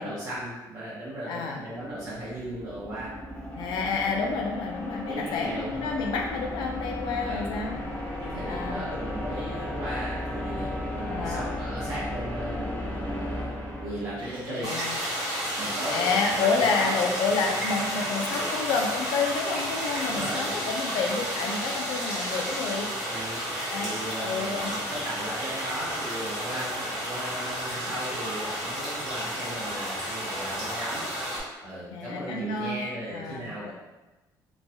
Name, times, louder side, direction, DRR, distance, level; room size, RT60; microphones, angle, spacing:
voice 1, 0.0-3.2 5.1-5.8 7.2-7.6 8.2-13.5 13.8-14.7 15.6-16.9 20.0-20.5 23.1-23.4 23.8-33.7, right 1 dB, 45° right, -9 dB, 0.7 m, -36 dB
voice 2, 1.3-1.6 3.6-7.8 8.4-8.8 11.0-11.5 14.5-15.0 15.9-22.9 23.7-23.9 24.2-24.7 31.9-32.8 33.1-33.7, left 4 dB, 90° left, 1 dB, 0.5 m, -29 dB
sound 1, 1.8-14.7, left 1 dB, 20° left, 0.6 m, -35 dB
Mechanisms, 14.2-28.7, right 1 dB, 75° right, 1.1 m, -42 dB
sound 2, 14.6-31.4, equal, 5° right, 1.0 m, -32 dB
3.0 x 2.2 x 2.7 m, 1.1 s
cardioid pair, 165°, 8 cm